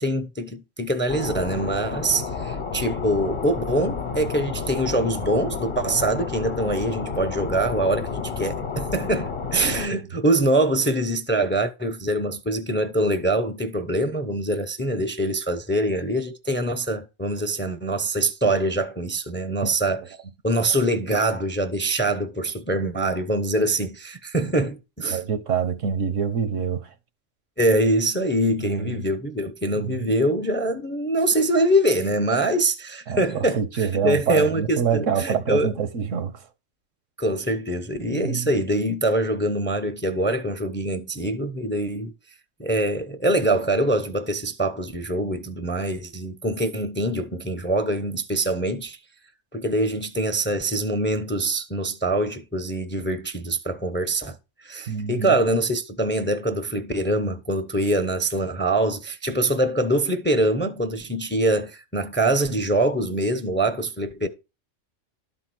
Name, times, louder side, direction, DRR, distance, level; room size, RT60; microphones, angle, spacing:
voice 1, 0.0-20.0 20.4-25.2 27.6-35.7 37.2-42.1 42.6-49.0 49.5-54.4 54.6-64.3, right 1 dB, 10° left, 0.5 m, -24 dB
sound 1, 1.1-9.9, left 5 dB, 50° left, 1.1 m, -31 dB
voice 2, 25.1-26.9 28.6-29.0 29.7-30.1 33.1-36.5 38.1-38.5 54.9-55.4, right 7 dB, 80° right, 1.4 m, -26 dB
12.0 x 4.2 x 6.1 m
omnidirectional pair, 1.3 m